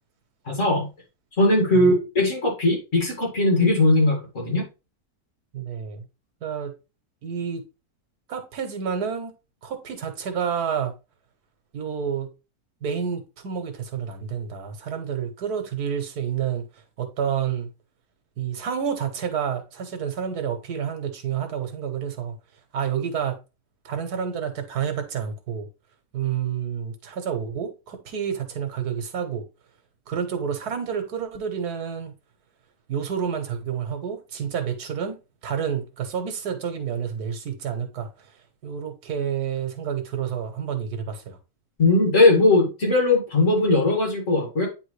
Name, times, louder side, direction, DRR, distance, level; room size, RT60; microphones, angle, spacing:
voice 1, 0.5-0.9 1.4-4.6 41.8-44.7, left 2 dB, 55° left, 2.6 m, -19 dB
voice 2, 5.5-6.0 6.4-6.7 7.2-7.6 8.3-9.3 9.6-10.9 11.7-12.3 12.8-16.6 17.0-17.7 18.4-22.3 22.7-23.3 23.8-25.7 26.1-29.4 30.1-32.1 32.9-35.2 35.4-38.1 38.6-41.4, right 8 dB, 90° right, 1.6 m, -29 dB
8.8 x 3.7 x 3.2 m
omnidirectional pair, 1.6 m